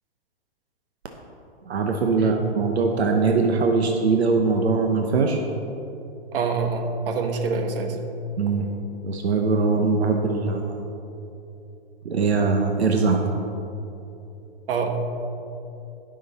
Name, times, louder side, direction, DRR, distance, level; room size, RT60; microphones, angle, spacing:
voice 1, 1.6-5.4 8.4-8.7 9.0-10.9 12.0-13.2, right 4 dB, 80° right, 3 dB, 1.1 m, -21 dB
voice 2, 6.3-8.0 14.7-15.0, right 4 dB, 60° right, 4 dB, 1.4 m, -26 dB
15.5 x 6.3 x 4.2 m, 2.9 s
hypercardioid pair, 145°, 31 cm